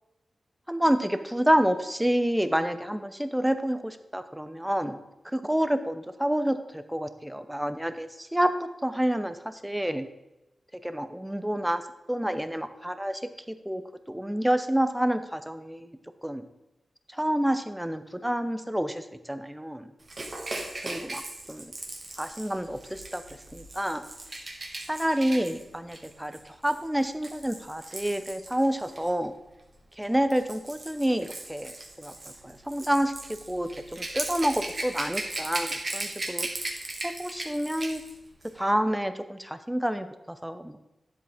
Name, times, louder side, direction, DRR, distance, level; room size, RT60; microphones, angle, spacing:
voice 1, 0.7-5.0 5.2-10.1 10.8-11.8 12.1-13.2 13.5-13.8 14.1-16.0 16.2-16.4 17.1-19.9 20.8-21.2 21.5-21.7 22.2-23.2 23.5-24.0 24.9-29.3 30.0-32.1 32.4-36.5 37.0-38.0 38.6-40.8, equal, 5° right, 10 dB, 0.6 m, -28 dB
Rattle / Rattle (instrument), 20.1-29.1 30.0-38.1 38.4-38.6, right 2 dB, 40° right, 1.4 m, -38 dB
10.5 x 7.6 x 3.5 m, 0.98 s
wide cardioid pair, 105°, 0 cm